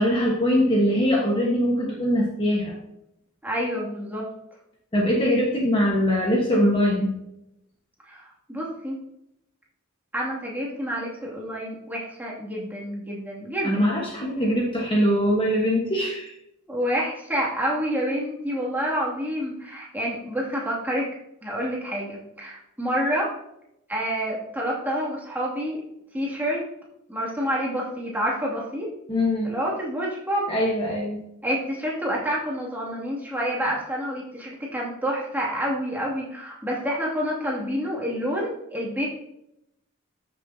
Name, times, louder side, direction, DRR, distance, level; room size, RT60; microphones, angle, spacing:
voice 1, 0.0-2.7 4.9-7.2 13.6-16.3 29.1-29.5 30.5-31.2, equal, 25° left, -2 dB, 1.3 m, -22 dB
voice 2, 3.4-4.3 8.1-9.0 10.1-14.0 16.7-21.1 21.4-23.3 23.9-25.8 26.1-26.7 27.1-28.9 29.4-30.5 31.4-39.1, equal, 10° right, -4 dB, 2.4 m, -28 dB
14.0 x 6.6 x 2.8 m, 0.82 s
head